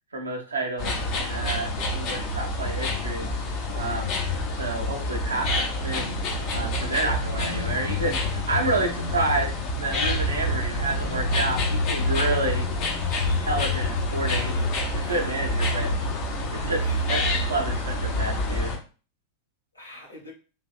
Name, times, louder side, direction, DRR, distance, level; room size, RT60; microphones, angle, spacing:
voice 1, 0.1-3.3 3.7-4.1 4.5-6.2 6.5-12.7 13.4-14.5 14.9-15.9 16.5-18.7, right 2 dB, 75° right, 0.8 m, -29 dB
sound 1, 0.8-18.8, left 2 dB, 40° left, 0.8 m, -27 dB
voice 2, 13.1-13.8 14.3-15.3 15.6-15.9 16.6-17.1 19.7-20.3, equal, 80° left, 1.2 m, -44 dB
3.5 x 2.7 x 2.4 m
figure-of-eight pair, 90°, 0 cm